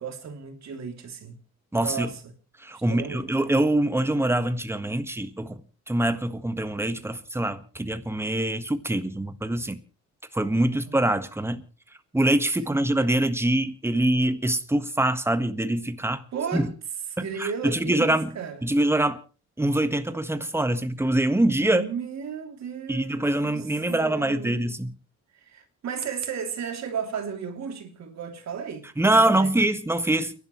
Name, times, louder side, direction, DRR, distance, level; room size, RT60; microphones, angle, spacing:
voice 1, 0.0-1.4 1.7-2.2 2.7-3.3 10.7-11.0 12.8-12.9 16.3-16.7 17.2-18.6 21.7-24.6 25.4-29.5, right 7 dB, 65° right, 3.1 m, -34 dB
voice 2, 1.7-2.1 2.6-9.8 10.3-11.6 12.1-16.2 16.5-16.7 17.2-18.3 18.6-19.2 19.6-21.8 22.9-24.9 29.0-30.3, right 1 dB, 10° right, 1.5 m, -24 dB
29.5 x 11.5 x 3.2 m
cardioid pair, 90°, 30 cm